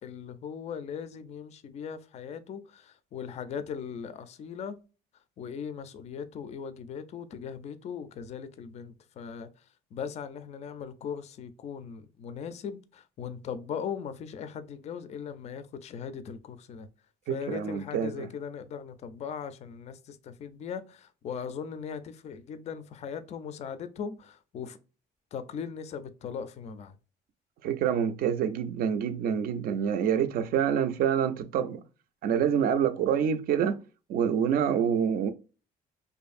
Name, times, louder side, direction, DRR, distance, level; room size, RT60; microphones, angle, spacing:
voice 1, 0.0-4.8 5.4-9.5 9.9-16.9 17.3-24.8 25.3-27.0, left 7 dB, 40° left, 0.4 m, -39 dB
voice 2, 17.3-18.3 27.6-31.8 32.2-33.8 34.1-35.3, right 8 dB, 60° right, 0.4 m, -27 dB
2.6 x 2.5 x 2.4 m
cardioid pair, 110°, 17 cm